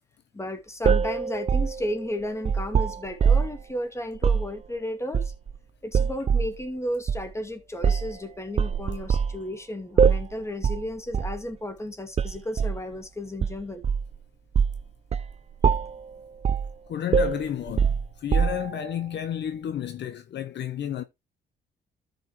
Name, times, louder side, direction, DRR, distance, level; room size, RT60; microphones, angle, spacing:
voice 1, 0.3-5.3 5.8-13.8, left 1 dB, 15° left, 2.2 m, -33 dB
sound 1, 0.8-3.6 4.2-4.5 5.1-5.6 5.9-6.5 7.1-7.3 7.8-8.2 8.6-9.4 10.0-10.3 10.6-10.9 11.1-11.4 12.2-12.8 13.4-14.2 14.5-14.8 15.1-15.3 15.6-16.0 16.4-16.7 17.1-18.8, right 6 dB, 30° right, 0.4 m, -23 dB
voice 2, 16.9-21.0, left 9 dB, 60° left, 1.0 m, -31 dB
13.5 x 5.4 x 3.0 m
cardioid pair, 90°, 20 cm